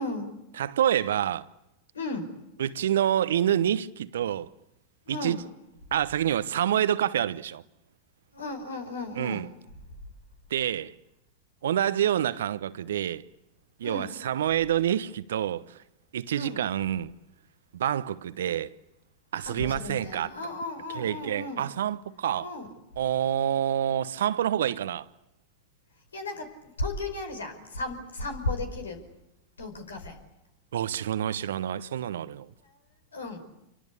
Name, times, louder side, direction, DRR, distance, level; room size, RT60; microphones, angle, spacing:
voice 1, 0.0-0.5 1.9-2.4 5.1-5.4 8.3-9.6 13.8-14.2 16.3-16.6 19.4-21.7 22.4-22.7 26.1-29.1 29.6-30.2 32.6-32.8 33.1-33.4, left 2 dB, 80° left, 5.3 m, -35 dB
voice 2, 0.6-1.5 2.6-4.5 5.1-5.4 5.9-7.6 9.2-9.5 10.5-11.0 11.6-13.3 13.8-15.8 16.1-17.1 17.7-18.7 19.3-20.3 20.9-22.5 23.0-25.1 30.7-32.5, right 10 dB, 70° right, 1.0 m, -27 dB
28.0 x 24.5 x 8.5 m
hypercardioid pair, 95°, 0 cm